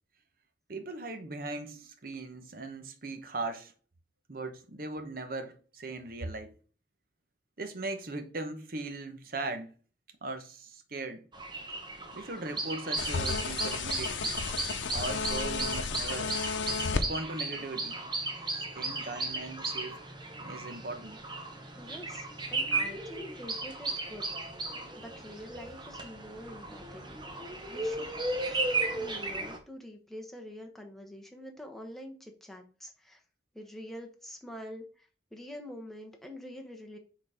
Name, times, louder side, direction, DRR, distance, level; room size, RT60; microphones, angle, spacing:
voice 1, 0.7-3.7 4.3-6.6 7.6-9.7 10.2-11.2 12.1-14.3 14.9-16.4 16.9-18.2 18.7-20.0 20.4-21.2, right 2 dB, 50° right, 1.0 m, -39 dB
sound 1, 11.3-29.6, right 2 dB, 25° right, 1.0 m, -35 dB
sound 2, 13.0-17.1, left 4 dB, 85° left, 0.7 m, -33 dB
voice 2, 21.8-24.3 25.0-27.2 27.7-28.1 28.9-33.2 33.5-37.0, equal, ahead, 1.0 m, -46 dB
6.6 x 3.9 x 5.0 m
head